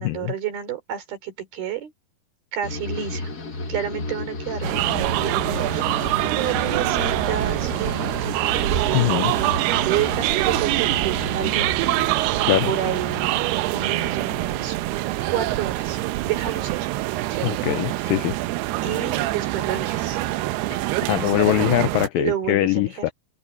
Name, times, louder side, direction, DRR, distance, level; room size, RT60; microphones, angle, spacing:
voice 1, 0.0-1.9 2.5-3.3 3.7-9.5 9.8-12.4 12.6-13.4 13.7-14.8 15.3-16.9 17.3-18.3 18.8-20.2 22.2-23.1, right 9 dB, 70° right, 5.2 m, -30 dB
sound 1, 2.6-15.9 16.2-16.9, left 2 dB, 55° left, 1.0 m, -34 dB
sound 2, 4.6-22.1, right 17 dB, 90° right, 2.8 m, -24 dB
voice 2, 8.9-9.3 12.5-12.7 17.4-18.4 21.0-23.1, left 16 dB, 85° left, 2.0 m, -22 dB
open air
omnidirectional pair, 4.6 m